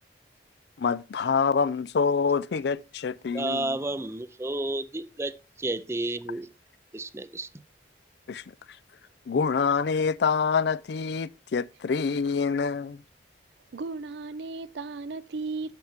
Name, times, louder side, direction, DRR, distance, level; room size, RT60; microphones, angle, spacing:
voice 1, 0.8-3.8 8.3-8.4 9.3-13.0, left 5 dB, 65° left, 0.4 m, -26 dB
voice 2, 3.3-6.5 6.9-7.5, right 2 dB, 15° right, 0.4 m, -31 dB
voice 3, 13.7-15.8, right 3 dB, 70° right, 0.5 m, -35 dB
12.0 x 5.8 x 3.5 m
head